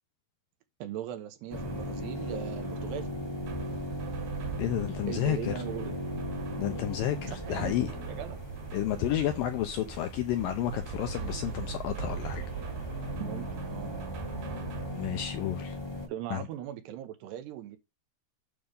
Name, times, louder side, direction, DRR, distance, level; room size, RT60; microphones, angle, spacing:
voice 1, 0.8-3.1 5.1-5.9 7.4-7.7 8.1-8.4 9.0-9.1 13.2-13.9 16.1-17.8, right 12 dB, 80° right, 3.2 m, -39 dB
sound 1, 1.5-16.1, left 1 dB, 25° left, 0.5 m, -39 dB
sound 2, 1.5-15.2, right 5 dB, 65° right, 3.6 m, -40 dB
voice 2, 4.6-5.5 6.6-7.9 8.7-12.7 14.9-15.8 16.3-16.5, left 11 dB, 75° left, 2.1 m, -31 dB
9.4 x 3.6 x 6.5 m
omnidirectional pair, 4.9 m